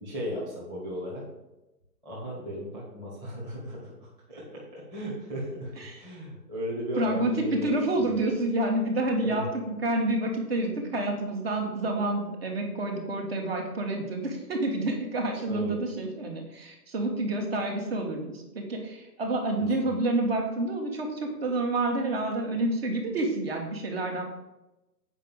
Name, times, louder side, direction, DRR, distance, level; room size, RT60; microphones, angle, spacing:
voice 1, 0.0-1.2 2.0-8.2 9.2-9.4 15.5-15.8 19.6-20.0, equal, 10° right, -7 dB, 1.4 m, -36 dB
voice 2, 7.0-24.2, right 2 dB, 35° right, 2 dB, 1.9 m, -28 dB
8.3 x 5.1 x 7.1 m, 0.98 s
hypercardioid pair, 160°, 50 cm